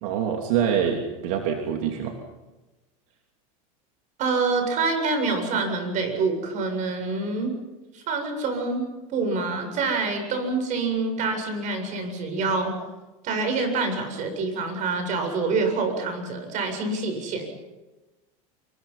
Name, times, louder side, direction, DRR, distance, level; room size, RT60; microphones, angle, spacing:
voice 1, 0.0-2.1, right 8 dB, 70° right, 2 dB, 3.1 m, -25 dB
voice 2, 4.2-7.5 7.9-8.8 9.1-12.7 13.2-17.4, right 3 dB, 45° right, 6 dB, 7.6 m, -26 dB
28.0 x 23.5 x 5.7 m, 1.1 s
supercardioid pair, 130°, 18 cm